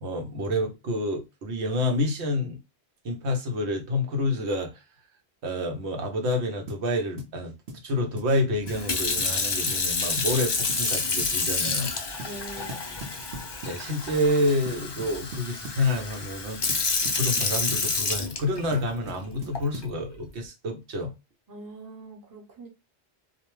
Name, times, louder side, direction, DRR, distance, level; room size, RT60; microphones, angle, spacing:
voice 1, 0.0-2.6 3.0-4.7 5.4-7.5 7.8-11.9 13.6-21.1, left 1 dB, 90° right, 1.0 m, -28 dB
sound 1, 6.7-6.9 7.2-7.4 7.7-7.9 8.2-8.3 8.7-8.9 9.2-9.4 9.7-9.8 10.2-10.4 10.7-10.9 11.2-11.4 11.7-11.8 12.2-12.4 12.7-13.8 14.7-15.9 16.7-17.9 18.7-20.0, right 1 dB, 60° right, 0.8 m, -40 dB
Sink (filling or washing) / Fill (with liquid), 8.7-18.9 19.5-19.8, left 4 dB, 45° left, 0.3 m, -29 dB
voice 2, 12.2-13.1 21.5-22.7, right 2 dB, 20° right, 0.6 m, -43 dB
2.4 x 2.1 x 3.0 m
omnidirectional pair, 1.1 m